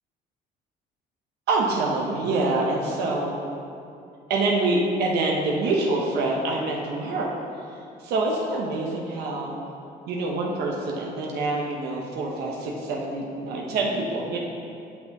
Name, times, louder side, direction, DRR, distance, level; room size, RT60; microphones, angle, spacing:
voice 1, 1.5-3.4 4.3-7.4 8.0-9.6 10.1-14.4, right 2 dB, 75° right, -2 dB, 0.9 m, -26 dB
8.5 x 5.7 x 2.9 m, 2.6 s
cardioid pair, 110°, 17 cm